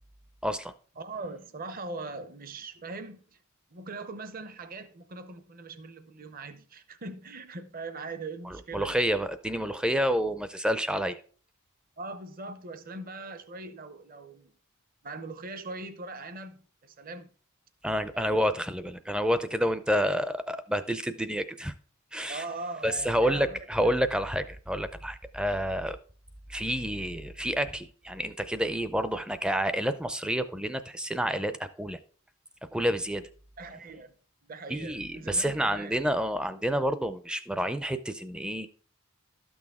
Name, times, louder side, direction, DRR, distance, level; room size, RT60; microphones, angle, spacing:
voice 1, 0.4-0.7 8.7-11.2 17.8-21.7 22.1-22.4 22.8-26.0 26.5-32.0 32.7-33.2 34.7-38.7, equal, 5° right, 0.4 m, -29 dB
voice 2, 1.0-3.4 3.7-8.9 12.0-14.6 15.0-17.3 18.1-18.4 22.3-23.9 33.6-34.1 34.4-36.0, right 3 dB, 40° right, 0.7 m, -41 dB
12.5 x 6.2 x 3.6 m
head